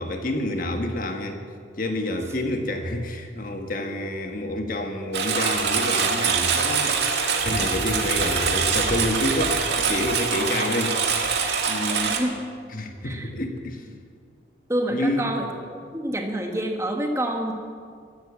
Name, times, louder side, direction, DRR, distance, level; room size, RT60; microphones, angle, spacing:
voice 1, 0.0-1.4 1.8-7.0 7.4-11.0 11.7-12.2 12.7-13.8 14.9-15.3, left 1 dB, 45° left, 4 dB, 1.4 m, -28 dB
Engine, 5.1-12.2, right 5 dB, 65° right, 1.9 m, -24 dB
voice 2, 12.1-12.4 13.0-13.3 14.7-17.5, right 1 dB, 15° right, 2 dB, 1.5 m, -27 dB
15.0 x 12.0 x 7.3 m, 2.1 s
head